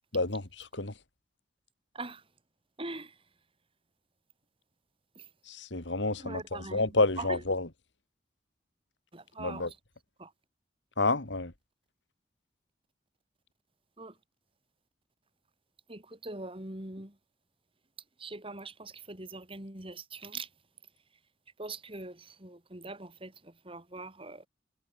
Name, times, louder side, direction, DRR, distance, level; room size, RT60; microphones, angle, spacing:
voice 1, 0.1-0.9 5.5-7.7 9.4-9.7 11.0-11.5, left 2 dB, 85° left, 2.6 m, -29 dB
voice 2, 2.8-3.2 5.2-5.3 6.2-7.4 9.1-9.8 10.2-10.3 14.0-14.2 15.9-17.2 18.2-20.5 21.6-24.5, right 2 dB, 30° right, 3.7 m, -42 dB
head